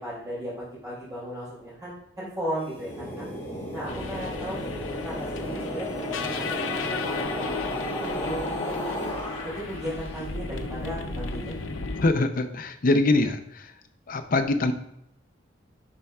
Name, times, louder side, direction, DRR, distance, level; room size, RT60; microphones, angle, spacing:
voice 1, 0.0-3.2 3.7-4.7 5.0-6.8 7.1-9.1 9.4-11.5, equal, 20° right, -12 dB, 2.5 m, -36 dB
sound 1, 2.6-10.0, equal, 15° left, 2.3 m, -34 dB
sound 2, 3.9-12.1, left 3 dB, 85° left, 0.6 m, -34 dB
voice 2, 12.0-13.7 14.1-14.7, left 2 dB, 45° left, 8 dB, 0.5 m, -23 dB
10.5 x 4.3 x 2.4 m, 0.75 s
head